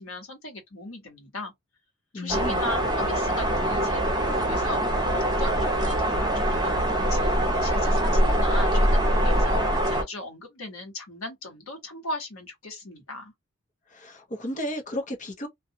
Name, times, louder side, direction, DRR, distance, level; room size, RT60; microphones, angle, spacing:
voice 1, 0.0-1.5 2.1-4.8 5.1-7.3 7.6-13.3, left 2 dB, 70° left, 1.4 m, -37 dB
voice 2, 2.1-2.6 13.9-15.5, left 1 dB, 35° left, 0.8 m, -33 dB
sound 1, 2.3-10.0, right 1 dB, 20° right, 0.8 m, -23 dB
2.6 x 2.3 x 2.7 m
head